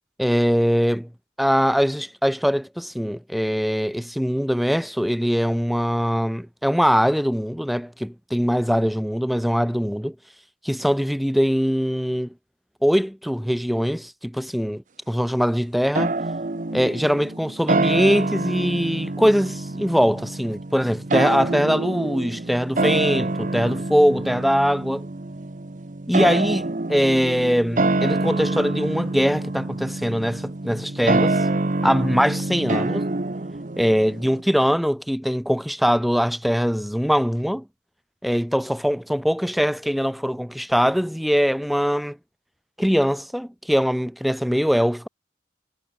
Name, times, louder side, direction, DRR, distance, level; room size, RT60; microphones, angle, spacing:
voice 1, 0.2-1.1 1.4-10.2 10.6-12.3 12.8-16.1 16.7-25.1 26.1-31.5 31.8-33.1 33.8-37.6 38.2-42.2 42.8-45.1, equal, ahead, 0.3 m, -22 dB
sound 1, 15.9-34.4, right 2 dB, 45° right, 0.9 m, -26 dB
head